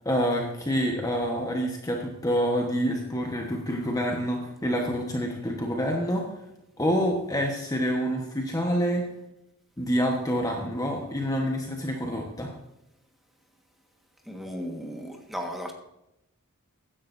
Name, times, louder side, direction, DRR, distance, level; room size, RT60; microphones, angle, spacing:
voice 1, 0.0-6.3 6.8-9.1 9.8-12.5, equal, 15° left, 1 dB, 1.2 m, -27 dB
voice 2, 14.3-15.7, equal, ahead, 2 dB, 1.5 m, -35 dB
15.5 x 10.5 x 2.7 m, 0.86 s
head